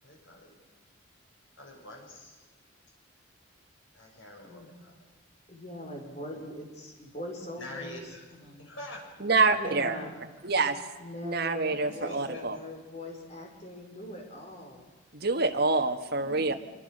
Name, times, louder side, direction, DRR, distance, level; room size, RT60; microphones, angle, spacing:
voice 1, 0.0-0.5 1.6-2.4 3.9-5.0 7.6-8.2 8.6-9.7 11.8-12.4, left 1 dB, 70° left, 0 dB, 7.3 m, -45 dB
voice 2, 5.5-8.7 9.6-10.1 11.0-14.8 16.2-16.5, left 1 dB, 35° left, 1 dB, 5.3 m, -42 dB
voice 3, 9.2-10.0 10.4-10.8 11.2-12.6 15.1-16.5, right 3 dB, 50° right, 4 dB, 1.6 m, -26 dB
25.5 x 23.5 x 6.7 m, 1.2 s
head